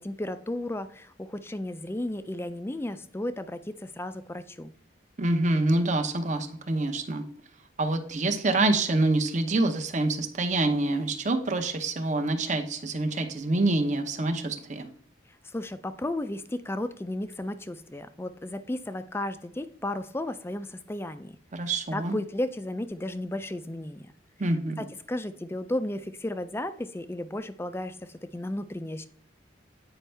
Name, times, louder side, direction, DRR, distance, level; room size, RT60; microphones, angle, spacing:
voice 1, 0.0-4.7 15.5-21.4 21.6-24.1 24.8-29.1, left 1 dB, 10° left, 12 dB, 0.4 m, -34 dB
voice 2, 5.2-7.2 7.8-14.9 21.5-22.2 24.4-24.8, right 2 dB, 40° right, 6 dB, 0.8 m, -26 dB
9.0 x 5.3 x 3.3 m, 0.63 s
head